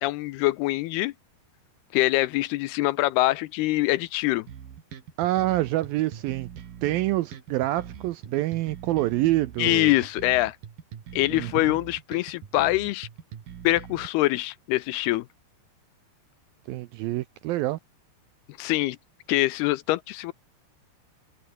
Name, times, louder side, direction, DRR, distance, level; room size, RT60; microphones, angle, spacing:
voice 1, 0.0-1.1 1.9-4.5 9.6-10.6 11.1-13.1 13.6-15.3 18.6-19.0 19.3-20.3, left 18 dB, 80° left, 2.5 m, -24 dB
sound 1, 4.5-14.1, right 8 dB, 60° right, 4.2 m, -42 dB
voice 2, 5.2-6.5 6.8-10.0 11.3-11.8 16.7-17.8, right 16 dB, 80° right, 2.2 m, -26 dB
open air
omnidirectional pair, 4.9 m